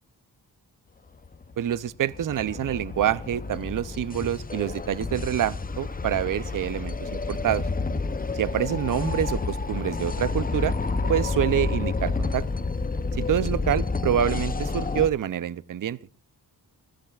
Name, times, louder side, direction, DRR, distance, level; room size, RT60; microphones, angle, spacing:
sound 1, 1.2-15.1, left 3 dB, 20° left, 0.6 m, -29 dB
voice 1, 1.6-7.6 8.3-10.7 11.1-12.4 13.2-16.0, right 10 dB, 50° right, 18 dB, 0.5 m, -26 dB
28.0 x 10.5 x 2.3 m, 0.40 s
wide cardioid pair, 160°, 40 cm